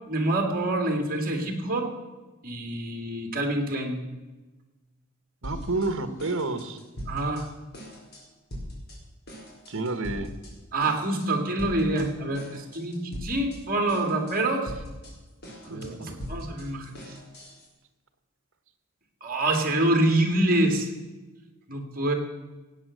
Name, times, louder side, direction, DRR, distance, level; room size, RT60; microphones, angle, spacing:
voice 1, 0.1-1.9 2.4-4.0 7.1-7.5 10.7-14.7 15.7-16.9 19.2-20.9 21.7-22.1, right 1 dB, 45° right, 4 dB, 2.4 m, -26 dB
sound 1, 5.4-5.9 6.2-7.4 7.7-8.2 8.5-9.0 9.3-10.5 10.8-11.3 11.6-12.1 12.3-13.6 13.9-14.4 14.7-17.7, equal, 50° left, 4.3 m, -40 dB
voice 2, 5.4-6.8 9.7-10.3 15.6-16.1, right 2 dB, 65° right, 10 dB, 1.4 m, -30 dB
17.5 x 8.6 x 6.5 m, 1.2 s
head